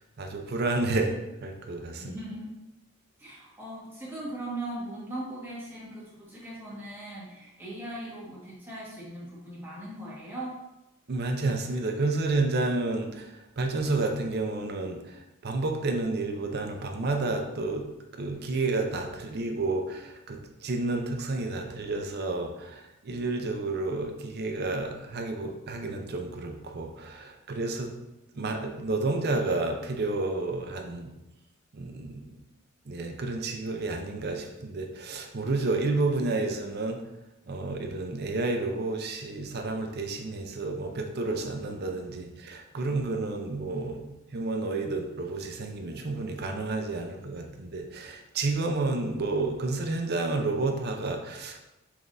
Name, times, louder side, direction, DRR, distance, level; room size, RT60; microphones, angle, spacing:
voice 1, 0.2-2.1 11.1-17.9 18.2-27.9 28.4-31.1 31.7-32.4 32.9-37.0 37.5-51.6, right 3 dB, 50° right, 4 dB, 0.6 m, -30 dB
voice 2, 2.0-2.5 3.2-10.6, right 1 dB, 10° right, -8 dB, 1.5 m, -39 dB
5.9 x 3.5 x 2.6 m, 0.94 s
head